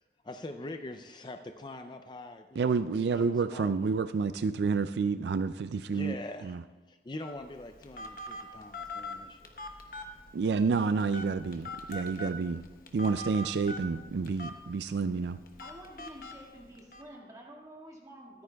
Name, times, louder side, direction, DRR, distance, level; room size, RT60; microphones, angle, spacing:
voice 1, 0.2-2.7 2.9-3.7 5.9-6.6 6.9-9.5, left 2 dB, 25° left, 7 dB, 0.4 m, -43 dB
voice 2, 2.6-6.2 6.4-6.6 10.3-12.6 12.9-15.4, right 5 dB, 70° right, 12 dB, 0.3 m, -29 dB
Telephone, 7.2-17.0, left 1 dB, 50° left, 1.1 m, -43 dB
voice 3, 15.6-18.4, right 1 dB, 20° right, -2 dB, 1.9 m, -49 dB
24.0 x 9.5 x 2.3 m, 1.2 s
head